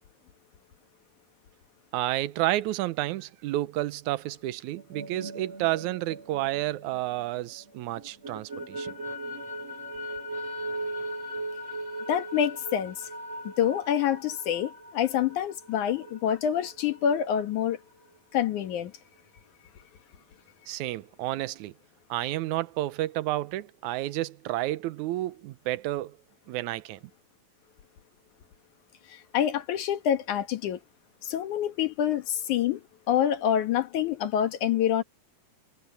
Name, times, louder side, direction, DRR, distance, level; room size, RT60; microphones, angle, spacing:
voice 1, 1.9-8.9 20.7-21.7 22.1-26.2 26.5-27.0, right 16 dB, 80° right, 2.2 m, -30 dB
sound 1, 4.8-7.6 8.0-17.4, right 1 dB, 60° right, 6.5 m, -38 dB
voice 2, 12.1-13.1 13.4-17.8 18.3-18.9 29.1-30.8 31.2-35.0, left 9 dB, 80° left, 2.9 m, -27 dB
omnidirectional pair, 3.4 m